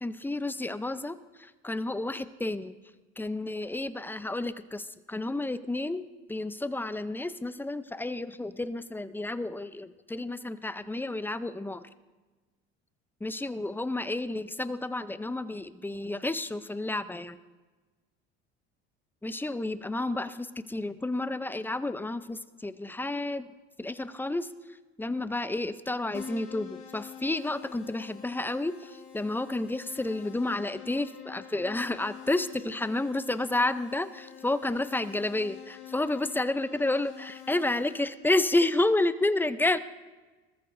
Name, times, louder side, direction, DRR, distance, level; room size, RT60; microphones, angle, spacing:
voice 1, 0.0-2.7 3.2-11.9 13.2-17.4 19.2-23.5 23.8-24.5 25.0-39.8, left 2 dB, 5° left, 14 dB, 0.6 m, -30 dB
Keyboard (musical), 26.1-38.0, left 8 dB, 65° left, 2.3 m, -47 dB
20.5 x 14.0 x 2.7 m, 1.2 s
hypercardioid pair, 80°, 32 cm